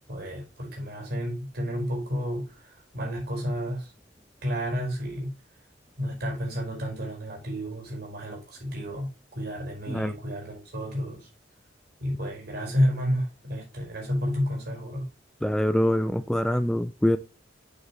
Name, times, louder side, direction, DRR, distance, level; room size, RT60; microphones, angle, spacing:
voice 1, 0.1-3.9 4.4-5.4 6.0-11.3 12.0-15.1, equal, 60° right, 5.0 m, -31 dB
voice 2, 15.4-17.2, left 1 dB, 5° left, 0.4 m, -24 dB
8.1 x 7.7 x 3.1 m
head